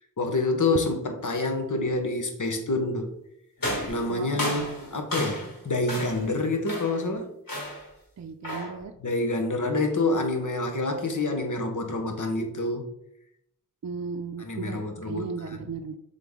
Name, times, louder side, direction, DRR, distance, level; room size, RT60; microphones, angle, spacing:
voice 1, 0.2-3.1 3.9-7.3 9.0-12.8 14.4-15.6, left 2 dB, 65° left, 4 dB, 1.1 m, -27 dB
sound 1, 3.6-5.6 5.9-6.3 6.7-7.1 7.5-7.9 8.4-8.8, equal, 80° left, 2.5 m, -32 dB
voice 2, 4.1-4.6 8.2-8.9 9.7-9.8 13.8-16.0, right 5 dB, 55° right, 6 dB, 0.5 m, -36 dB
7.4 x 3.8 x 3.7 m, 0.76 s
wide cardioid pair, 85°, 33 cm